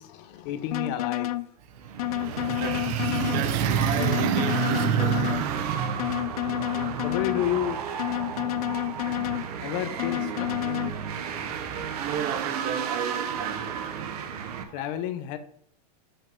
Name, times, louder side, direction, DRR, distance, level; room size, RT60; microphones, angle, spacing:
voice 1, 0.0-1.3 7.0-7.8 9.6-10.8 14.7-15.4, left 11 dB, 40° left, 0.8 m, -30 dB
sound 1, 0.7-1.5 2.0-3.5 4.0-5.5 6.0-7.5 8.0-9.5 10.0-10.9, left 15 dB, 60° left, 0.5 m, -29 dB
sound 2, 1.7-14.6, right 7 dB, 65° right, 1.2 m, -34 dB
voice 2, 2.2-6.1 11.4-11.7 12.0-13.7 14.5-14.9, right 8 dB, 40° right, 1.1 m, -28 dB
7.7 x 6.7 x 3.7 m
supercardioid pair, 155°, 21 cm